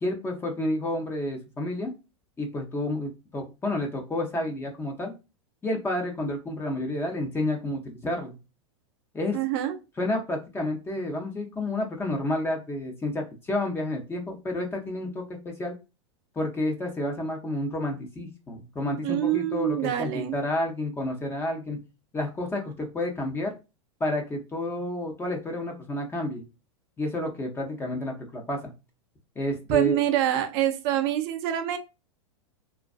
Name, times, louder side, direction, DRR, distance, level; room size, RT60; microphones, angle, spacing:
voice 1, 0.0-1.9 2.4-5.1 5.6-8.4 9.1-9.4 10.0-15.8 16.4-21.8 22.1-23.5 24.0-26.4 27.0-28.7 29.4-30.0, left 1 dB, 15° left, 0.6 m, -30 dB
voice 2, 9.3-9.8 19.0-20.4 29.7-31.8, right 11 dB, 50° right, 0.5 m, -26 dB
2.3 x 2.2 x 2.4 m
hypercardioid pair, 120°, 16 cm